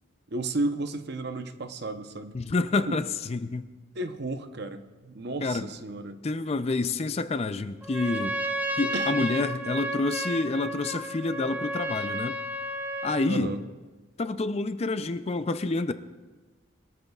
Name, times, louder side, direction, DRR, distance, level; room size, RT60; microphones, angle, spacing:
voice 1, 0.3-2.4 2.9-3.0 3.9-6.2 8.9-9.4 13.2-13.6, right 2 dB, 55° right, 8 dB, 0.8 m, -33 dB
voice 2, 2.3-3.7 5.4-5.7 6.2-8.4 8.8-12.4 13.0-13.5 14.2-15.9, left 3 dB, 30° left, 12 dB, 0.4 m, -28 dB
Trumpet, 7.8-13.3, right 1 dB, 10° right, 0.9 m, -32 dB
23.0 x 13.0 x 2.4 m, 1.3 s
head